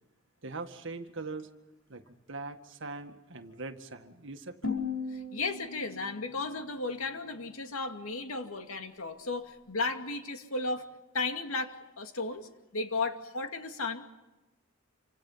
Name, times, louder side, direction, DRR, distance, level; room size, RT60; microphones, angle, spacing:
voice 1, 0.4-1.5 1.9-4.8, right 3 dB, 60° right, 7 dB, 1.9 m, -41 dB
sound 1, 4.6-7.6, left 4 dB, 65° left, 5.1 m, -38 dB
voice 2, 5.3-10.9 11.1-14.1, left 3 dB, 85° left, 6 dB, 2.4 m, -34 dB
28.0 x 26.0 x 5.7 m, 1.0 s
head